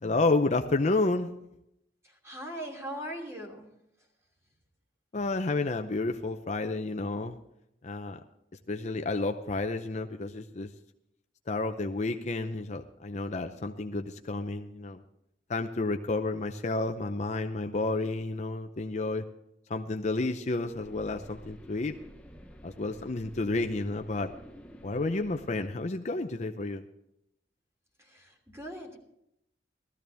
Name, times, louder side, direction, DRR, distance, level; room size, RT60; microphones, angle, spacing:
voice 1, 0.0-1.3 5.1-7.4 7.8-8.2 8.7-10.7 11.5-15.0 15.5-19.2 19.7-22.0 22.6-24.3 24.8-26.8, left 2 dB, 40° left, 6 dB, 0.6 m, -30 dB
voice 2, 2.0-3.7 28.0-29.0, equal, 15° right, 1 dB, 3.0 m, -40 dB
sound 1, 20.7-25.7, equal, 5° left, 0.8 m, -50 dB
16.5 x 14.0 x 3.4 m, 0.79 s
head